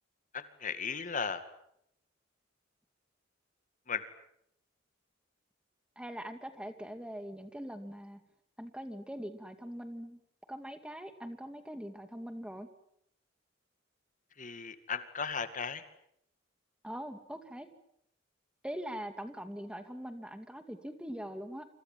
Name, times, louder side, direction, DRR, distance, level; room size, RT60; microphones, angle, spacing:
voice 1, 0.3-1.4 3.9-4.0 14.4-15.8, left 6 dB, 40° left, 11 dB, 2.2 m, -36 dB
voice 2, 6.0-8.2 8.6-10.2 10.5-12.7 16.8-17.7 18.6-21.7, equal, 5° right, 9 dB, 2.3 m, -42 dB
27.5 x 26.5 x 7.5 m, 0.75 s
head